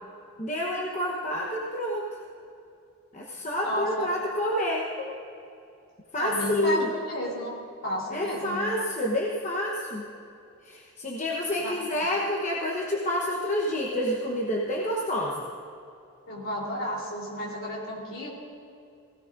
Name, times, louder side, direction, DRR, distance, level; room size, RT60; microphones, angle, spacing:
voice 1, 0.4-2.1 3.1-5.0 6.1-6.9 8.1-10.1 10.6-15.4, left 1 dB, 35° left, -3 dB, 1.1 m, -28 dB
voice 2, 3.6-4.1 6.2-7.5 7.8-8.6 11.6-11.7 16.3-18.4, left 1 dB, 60° left, -3 dB, 3.6 m, -32 dB
17.5 x 17.0 x 2.6 m, 2.6 s
head